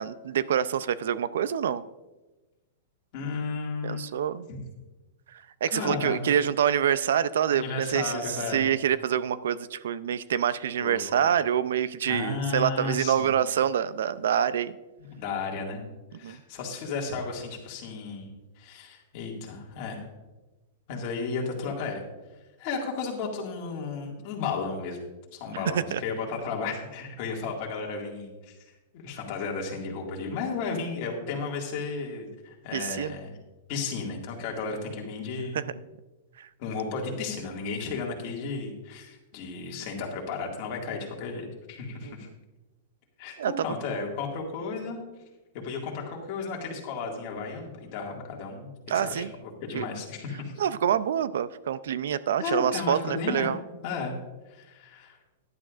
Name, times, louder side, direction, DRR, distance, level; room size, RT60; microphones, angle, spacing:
voice 1, 0.0-1.8 3.8-4.5 5.6-14.7 16.2-16.4 25.7-26.0 32.7-33.1 35.5-35.6 36.4-36.5 42.0-42.2 43.4-43.5 48.9-49.3 49.7-49.9 50.6-53.6, right 9 dB, 80° right, 16 dB, 0.5 m, -26 dB
voice 2, 3.1-4.1 4.5-4.6 5.7-6.2 7.5-8.7 10.8-11.3 12.1-13.4 15.1-15.8 16.1-18.3 18.6-20.1 20.9-22.0 22.6-25.0 25.3-28.6 28.9-33.3 33.7-35.6 36.6-42.3 43.2-45.0 45.5-49.3 49.6-50.5 52.4-53.5 53.8-54.1 54.5-55.2, left 4 dB, 35° left, 0 dB, 2.1 m, -34 dB
15.0 x 11.0 x 2.5 m, 1.1 s
supercardioid pair, 175°, 0 cm